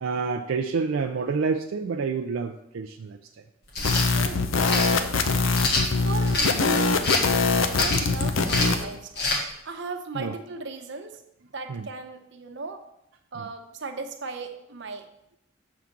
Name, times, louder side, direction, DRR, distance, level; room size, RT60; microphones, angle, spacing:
voice 1, 0.0-3.2 10.2-10.3 11.7-11.8, right 5 dB, 85° right, 3 dB, 0.4 m, -28 dB
sound 1, 3.7-4.1 4.7-4.9 5.5-6.5 7.0-7.3 7.7-8.1 8.5-8.8 9.2-9.4, left 2 dB, 55° left, 1.5 m, -25 dB
sound 2, 3.8-8.8, left 3 dB, 80° left, 0.6 m, -23 dB
voice 2, 4.1-4.5 4.9-5.4 6.0-7.0 7.7-9.3 9.6-11.2 11.5-12.8 13.3-15.0, right 3 dB, 60° right, 5 dB, 0.8 m, -37 dB
6.9 x 3.7 x 5.9 m, 0.80 s
head